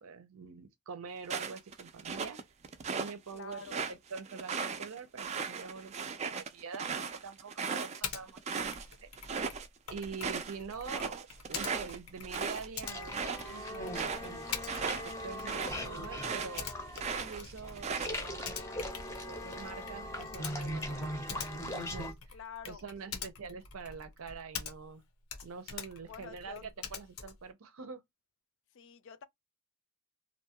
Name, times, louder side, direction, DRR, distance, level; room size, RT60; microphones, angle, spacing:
voice 1, 0.0-2.4 2.9-6.0 6.3-9.1 9.9-14.4 14.8-16.7 17.2-18.4 19.2-22.1 22.6-25.0 25.4-28.0, right 5 dB, 80° right, 0.6 m, -45 dB
sound 1, 1.2-3.1 3.5-8.8 9.2-9.7 10.0-16.6 16.9-18.4, right 5 dB, 30° right, 0.4 m, -37 dB
voice 2, 3.3-3.8 10.9-11.1 22.3-23.2 26.0-26.6 28.7-29.2, left 6 dB, 60° left, 0.4 m, -48 dB
Typing, 8.0-8.2 8.6-25.0 25.3-27.5, left 6 dB, 85° left, 0.8 m, -45 dB
sound 2, 12.8-22.1, left 1 dB, 15° left, 0.6 m, -40 dB
2.6 x 2.2 x 2.8 m
head